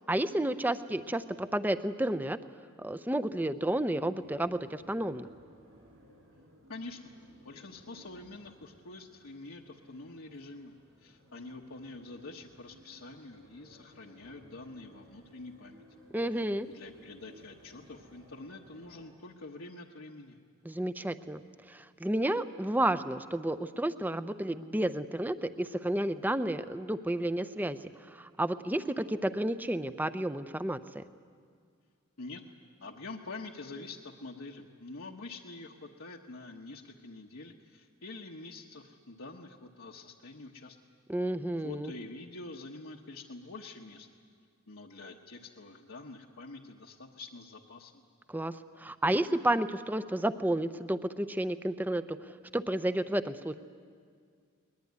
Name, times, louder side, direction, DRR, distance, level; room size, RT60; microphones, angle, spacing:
voice 1, 0.0-2.4 2.8-5.3 16.1-16.7 20.6-21.4 21.7-31.0 41.1-41.9 48.3-53.6, right 1 dB, 10° right, 12 dB, 0.6 m, -31 dB
sound 1, 3.2-19.0, equal, 65° right, 6.7 m, -59 dB
voice 2, 6.7-7.0 7.4-15.8 16.3-20.4 32.2-32.4 32.8-40.8 41.6-44.1 44.7-48.0, left 3 dB, 75° left, -2 dB, 1.2 m, -46 dB
21.5 x 21.0 x 9.5 m, 2.1 s
head